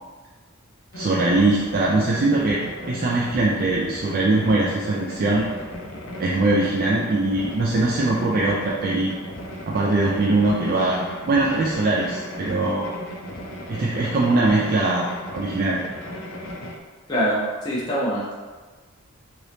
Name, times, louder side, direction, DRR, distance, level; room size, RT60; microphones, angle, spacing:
sound 1, 0.9-16.8, left 1 dB, 65° left, 0.5 m, -36 dB
voice 1, 0.9-2.6 2.9-5.4 6.2-9.1 9.7-12.9 13.7-15.1 15.3-15.8, right 2 dB, 40° right, -4 dB, 0.3 m, -21 dB
voice 2, 17.1-18.3, equal, 20° left, -7 dB, 0.6 m, -24 dB
2.9 x 2.6 x 3.2 m, 1.4 s
head